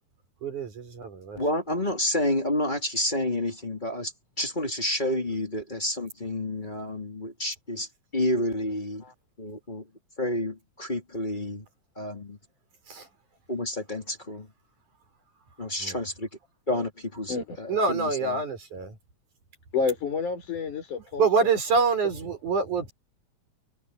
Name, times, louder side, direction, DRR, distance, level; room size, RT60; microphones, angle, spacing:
voice 1, 0.4-1.4 12.9-13.1 15.8-16.0 17.7-19.0 21.2-22.9, right 4 dB, 80° right, 7.0 m, -26 dB
voice 2, 1.3-4.1 4.4-9.0 9.4-9.9 10.2-11.6 12.0-12.4 13.5-14.5 15.6-16.3 16.7-18.4, left 1 dB, 15° left, 3.0 m, -29 dB
voice 3, 19.7-21.6, left 5 dB, 80° left, 7.8 m, -30 dB
omnidirectional pair, 3.5 m